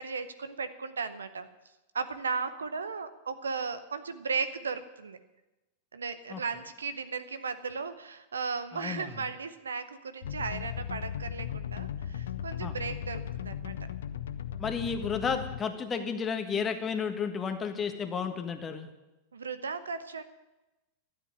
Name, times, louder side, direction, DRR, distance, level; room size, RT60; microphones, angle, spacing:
voice 1, 0.0-1.5 1.9-5.2 5.9-13.7 19.3-20.2, right 5 dB, 70° right, 12 dB, 0.8 m, -36 dB
voice 2, 8.7-9.1 12.6-12.7 14.6-18.9, left 6 dB, 20° left, 7 dB, 1.5 m, -32 dB
sound 1, 10.2-15.6, left 9 dB, 60° left, 0.7 m, -37 dB
12.5 x 7.8 x 9.6 m, 1.0 s
figure-of-eight pair, 90°, 0 cm